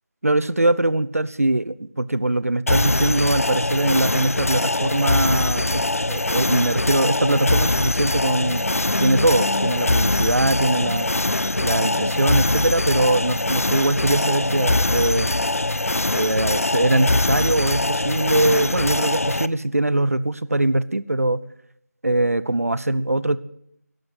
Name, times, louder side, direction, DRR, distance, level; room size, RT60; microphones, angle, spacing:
voice 1, 0.2-5.8 6.1-8.6 9.0-11.1 11.6-15.3 16.1-21.4 22.0-23.4, right 2 dB, 55° right, 18 dB, 0.7 m, -22 dB
sound 1, 2.7-19.5, left 2 dB, 55° left, 0.5 m, -22 dB
sound 2, 8.2-15.8, left 1 dB, 85° left, 0.8 m, -34 dB
12.0 x 12.0 x 8.1 m, 0.73 s
figure-of-eight pair, 170°, 9 cm